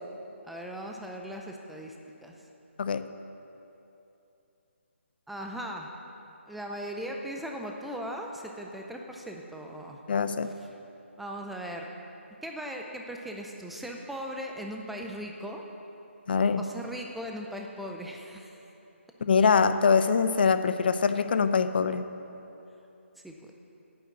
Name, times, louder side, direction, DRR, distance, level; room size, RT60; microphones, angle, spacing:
voice 1, 0.4-1.9 2.2-2.5 5.3-5.9 6.5-10.0 10.4-10.7 11.2-11.9 12.4-15.6 16.6-18.6 23.2-23.5, equal, ahead, 1 dB, 0.5 m, -38 dB
voice 2, 10.1-10.5 16.3-16.6 19.2-22.0, left 5 dB, 50° left, 11 dB, 0.5 m, -23 dB
9.3 x 7.0 x 8.2 m, 2.9 s
hypercardioid pair, 165°, 7 cm